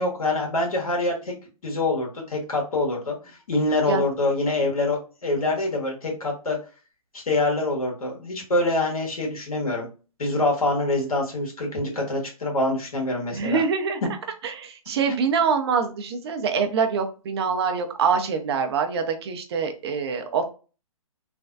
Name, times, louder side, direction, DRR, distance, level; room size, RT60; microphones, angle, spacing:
voice 1, 0.0-1.3 1.6-6.6 7.1-9.9 10.2-13.6, left 2 dB, 75° left, 0 dB, 1.5 m, -25 dB
voice 2, 13.3-14.0 14.4-20.5, right 5 dB, 45° right, 6 dB, 0.6 m, -25 dB
3.2 x 2.2 x 2.5 m, 0.34 s
figure-of-eight pair, 130°, 19 cm